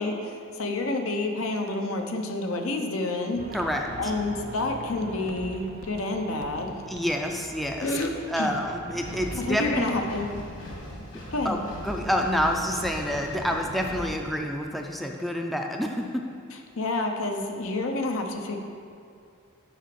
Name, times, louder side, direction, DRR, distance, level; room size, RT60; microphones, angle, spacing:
voice 1, 0.0-3.4 4.0-6.8 7.8-8.1 8.4-8.5 9.3-10.3 11.3-11.6 16.8-18.6, left 2 dB, 80° left, 3 dB, 0.8 m, -29 dB
sound 1, 3.4-10.1, right 1 dB, 45° right, 0.7 m, -42 dB
voice 2, 3.5-3.9 6.9-7.9 8.3-9.9 11.4-11.6 11.8-16.2, equal, ahead, 1 dB, 0.4 m, -28 dB
Walk footsteps, 5.1-9.1 9.7-10.2 10.7-11.1 11.4-14.3 14.6-14.7, right 4 dB, 80° right, 0.5 m, -48 dB
Engine, 9.0-14.2, equal, 60° left, 1.9 m, -39 dB
6.4 x 4.9 x 6.8 m, 2.4 s
head